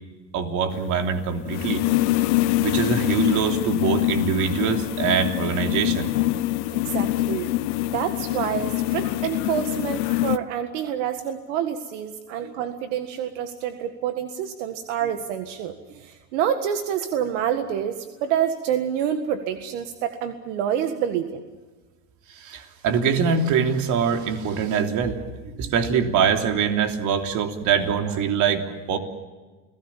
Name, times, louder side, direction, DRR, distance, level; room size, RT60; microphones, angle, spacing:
voice 1, 0.3-1.8 2.6-6.1 12.3-12.5 22.4-25.3 25.6-29.0, right 6 dB, 55° right, 5 dB, 3.3 m, -23 dB
sound 1, 0.7-10.4, left 16 dB, 75° left, 1.0 m, -24 dB
voice 2, 6.7-7.5 7.9-21.4, right 9 dB, 80° right, 7 dB, 1.8 m, -27 dB
30.0 x 18.0 x 7.3 m, 1.3 s
supercardioid pair, 130°, 36 cm